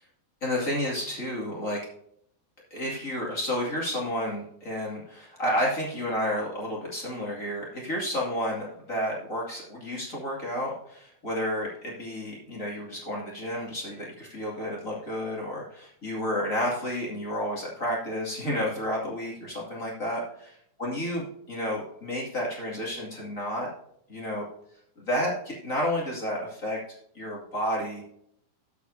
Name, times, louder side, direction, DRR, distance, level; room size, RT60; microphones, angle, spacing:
voice 1, 0.4-1.8 2.7-20.5 20.8-23.7 24.1-24.4 25.0-26.8 27.1-28.0, equal, 25° left, -3 dB, 2.0 m, -31 dB
13.0 x 7.2 x 2.7 m, 0.72 s
omnidirectional pair, 4.5 m